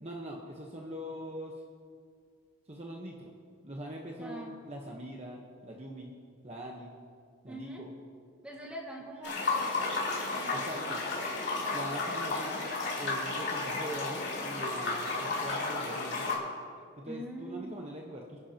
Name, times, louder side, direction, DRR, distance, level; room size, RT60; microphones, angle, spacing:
voice 1, 0.0-1.5 2.7-3.3 3.6-6.1 6.4-6.9 7.4-7.9 10.5-11.0 11.7-12.6 12.9-16.4 17.0-18.4, right 1 dB, 30° right, -1 dB, 1.1 m, -42 dB
voice 2, 4.2-4.5 7.5-7.9 8.4-11.4 17.1-17.8, right 1 dB, 5° right, -2 dB, 1.9 m, -44 dB
sound 1, 9.2-16.3, left 3 dB, 55° left, 3.3 m, -33 dB
27.0 x 10.5 x 2.9 m, 2.1 s
head